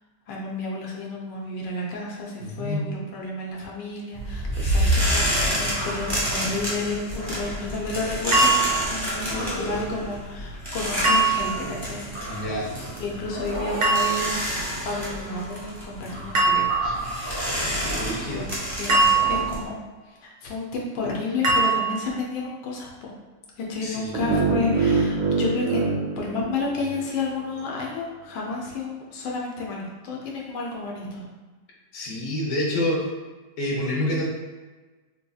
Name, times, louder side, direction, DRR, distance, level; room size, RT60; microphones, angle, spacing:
voice 1, 0.3-5.2 5.6-12.1 13.0-16.8 18.3-18.5 18.8-19.8 20.1-23.1 23.6-25.9 26.2-31.2, left 3 dB, 80° left, -2 dB, 1.3 m, -31 dB
voice 2, 2.4-2.9 9.2-10.1 12.3-12.7 16.8-16.9 17.9-18.5 23.8-24.6 31.9-33.1 33.6-34.3, left 1 dB, 55° left, -3 dB, 1.1 m, -28 dB
sound 1, 4.1-19.6, equal, 20° right, 0.7 m, -28 dB
sound 2, 8.3-9.0 11.0-11.8 13.8-14.5 16.3-17.0 18.9-19.8 21.4-22.2, right 3 dB, 60° right, 0.8 m, -22 dB
sound 3, 24.1-27.2, right 4 dB, 80° right, 1.2 m, -25 dB
4.1 x 2.7 x 2.3 m, 1.3 s
omnidirectional pair, 1.9 m